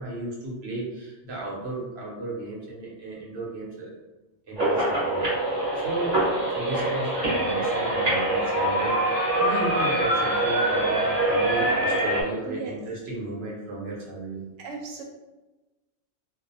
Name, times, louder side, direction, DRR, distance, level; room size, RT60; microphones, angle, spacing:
voice 1, 0.0-3.9 4.5-5.5 5.8-6.2 6.5-14.4, right 2 dB, 60° right, -4 dB, 1.0 m, -34 dB
sound 1, 4.6-12.2, right 1 dB, 35° right, 1.0 m, -24 dB
voice 2, 12.4-12.8 14.6-15.0, right 4 dB, 90° right, 1 dB, 0.9 m, -36 dB
2.5 x 2.0 x 2.6 m, 1.1 s
omnidirectional pair, 1.3 m